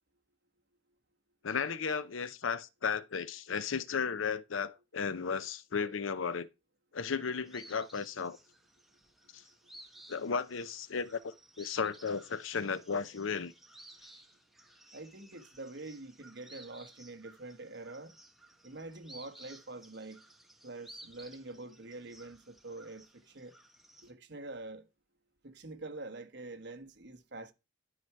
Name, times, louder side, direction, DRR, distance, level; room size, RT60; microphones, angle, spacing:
voice 1, 1.4-6.5 6.9-8.4 9.3-9.4 10.1-13.5, left 6 dB, 85° left, 0.7 m, -34 dB
sound 1, 7.5-24.1, right 1 dB, ahead, 1.0 m, -57 dB
voice 2, 14.9-18.1 18.6-20.2 20.6-23.5 24.0-24.8 25.4-27.5, right 2 dB, 60° right, 1.3 m, -46 dB
12.0 x 4.9 x 4.6 m
head